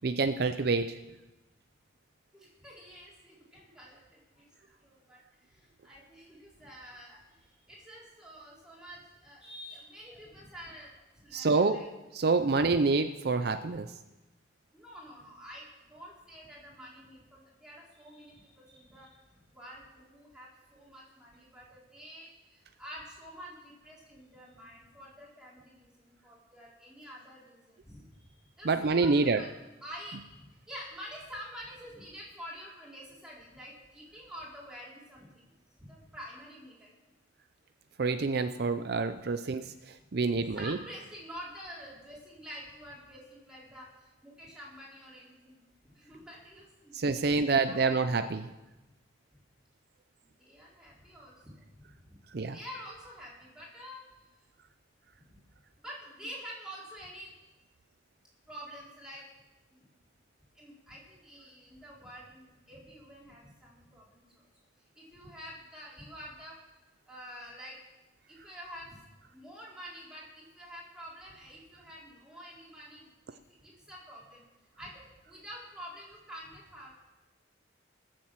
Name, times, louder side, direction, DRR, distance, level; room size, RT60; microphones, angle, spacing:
voice 1, 0.0-1.0 11.3-11.8 12.1-13.9 28.6-29.4 38.0-40.8 46.9-48.5 52.3-52.6, right 4 dB, 55° right, 10 dB, 0.5 m, -27 dB
voice 2, 2.3-11.9 14.7-29.5 29.8-36.9 40.3-45.7 45.9-47.0 47.6-48.0 50.4-51.7 51.9-52.2 52.4-54.0 54.4-54.5 55.2-55.4 55.8-57.3 58.5-59.2 59.7-59.9 60.6-64.5 64.9-66.6 67.1-67.8 68.3-73.1 73.5-74.4 74.8-77.0, equal, 5° right, -6 dB, 4.2 m, -48 dB
19.5 x 7.5 x 7.5 m, 1.1 s
head